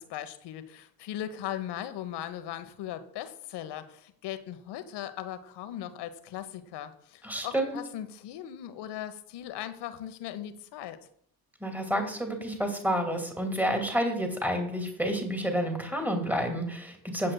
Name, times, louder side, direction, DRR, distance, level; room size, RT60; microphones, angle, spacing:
voice 1, 0.0-11.0, left 11 dB, 55° left, 10 dB, 1.2 m, -38 dB
voice 2, 7.2-7.8 11.6-17.3, equal, 5° right, 4 dB, 2.4 m, -29 dB
16.5 x 7.5 x 2.3 m, 0.66 s
hypercardioid pair, 60°, 50 cm